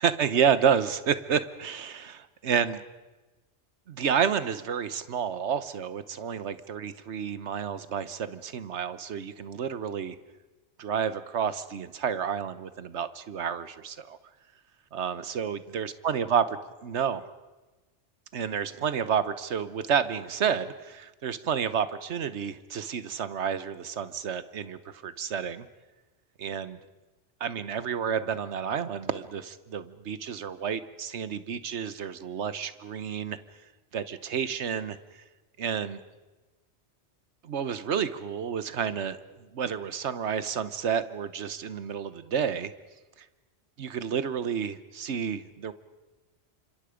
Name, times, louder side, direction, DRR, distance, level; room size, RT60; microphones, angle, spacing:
voice 1, 0.0-2.8 3.9-10.1 10.8-14.2 14.9-16.5 16.8-17.3 18.3-25.7 26.4-26.8 27.4-33.4 33.9-35.0 35.6-36.0 37.4-39.2 39.5-42.7 43.8-45.7, right 7 dB, 75° right, 13 dB, 1.3 m, -30 dB
28.5 x 25.5 x 5.1 m, 1.2 s
omnidirectional pair, 1.2 m